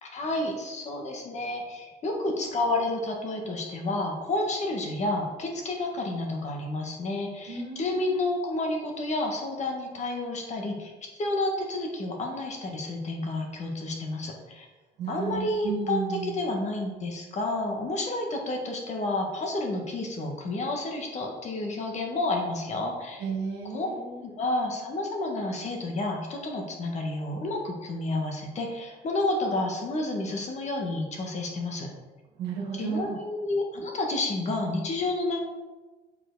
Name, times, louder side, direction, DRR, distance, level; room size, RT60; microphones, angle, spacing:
voice 1, 0.0-14.6 15.1-23.2 23.7-23.9 24.2-31.9 32.7-35.5, left 2 dB, 45° left, 2 dB, 1.6 m, -30 dB
voice 2, 7.5-8.0 15.0-16.4 23.2-24.3 32.4-33.2, right 6 dB, 80° right, -1 dB, 1.6 m, -33 dB
7.4 x 4.6 x 4.0 m, 1.2 s
cardioid pair, 110°, 17 cm